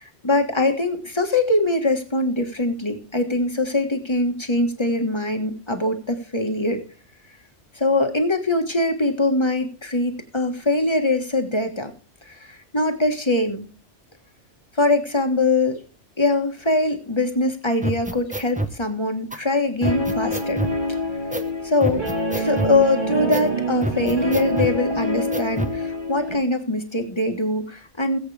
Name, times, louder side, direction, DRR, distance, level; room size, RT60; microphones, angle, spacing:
voice 1, 0.0-6.8 7.7-11.9 12.2-13.7 14.8-15.8 16.2-20.6 20.9-21.0 21.6-22.0 22.3-28.2, left 2 dB, 25° left, 5 dB, 1.6 m, -22 dB
sound 1, 17.8-18.7 19.3-19.4 19.8-20.8 21.3-21.5 21.8-22.8 23.3-23.5 23.8-24.8 25.3-25.8, right 1 dB, 5° right, 0.9 m, -27 dB
Guitar, 19.8-26.4, equal, 45° right, 2.3 m, -26 dB
20.0 x 8.0 x 3.5 m, 0.37 s
omnidirectional pair, 1.2 m